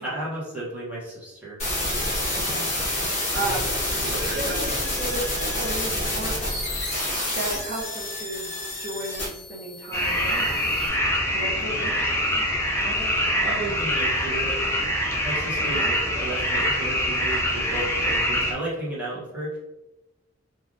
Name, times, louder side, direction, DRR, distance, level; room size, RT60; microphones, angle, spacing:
voice 1, 0.0-2.3 3.3-3.5 4.0-4.7 12.8-14.6 15.2-19.6, right 1 dB, 5° right, -9 dB, 0.9 m, -33 dB
sound 1, 1.6-10.9, left 1 dB, 35° left, 1.0 m, -28 dB
voice 2, 2.3-2.7 3.3-3.7 4.3-6.4 7.3-8.5 8.8-10.6 11.2-12.2 15.6-15.9, right 1 dB, 50° right, -5 dB, 0.7 m, -33 dB
sound 2, 9.9-18.5, equal, 15° left, 0.3 m, -24 dB
3.2 x 2.5 x 2.5 m, 0.98 s
head